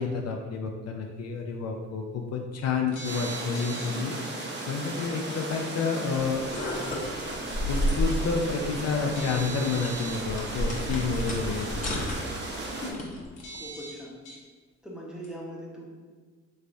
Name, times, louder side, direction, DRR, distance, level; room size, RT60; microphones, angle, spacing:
voice 1, 0.0-4.2 4.7-6.4 7.7-12.0, left 5 dB, 60° left, 2 dB, 0.4 m, -29 dB
sound 1, 2.9-4.0 5.3-5.5 9.1-10.2 11.5-11.6 13.4-14.4 15.2-15.3, right 3 dB, 75° left, 0.9 m, -41 dB
sound 2, 3.0-12.9, right 2 dB, 35° right, 0.7 m, -36 dB
sound 3, 6.2-13.3, equal, 25° left, 0.9 m, -33 dB
voice 2, 12.7-13.1 13.5-14.1 14.8-16.0, equal, ahead, -4 dB, 0.8 m, -41 dB
3.4 x 3.1 x 2.6 m, 1.5 s
cardioid pair, 90°, 30 cm